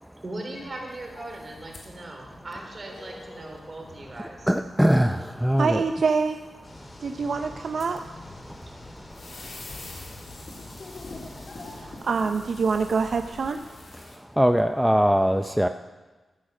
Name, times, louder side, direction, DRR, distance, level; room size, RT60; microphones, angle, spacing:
voice 1, 0.2-4.6, right 2 dB, 40° right, 1 dB, 3.7 m, -39 dB
sound 1, 0.5-14.2, left 2 dB, 60° left, 2.8 m, -46 dB
voice 2, 4.5-5.8 14.4-15.7, equal, 5° right, 7 dB, 0.5 m, -21 dB
voice 3, 5.6-6.4 7.0-8.0 12.0-13.6, right 5 dB, 65° right, 6 dB, 0.6 m, -25 dB
sound 2, 6.6-13.5, left 1 dB, 35° left, 2.7 m, -47 dB
13.0 x 10.0 x 6.4 m, 1.2 s
cardioid pair, 75°, 0 cm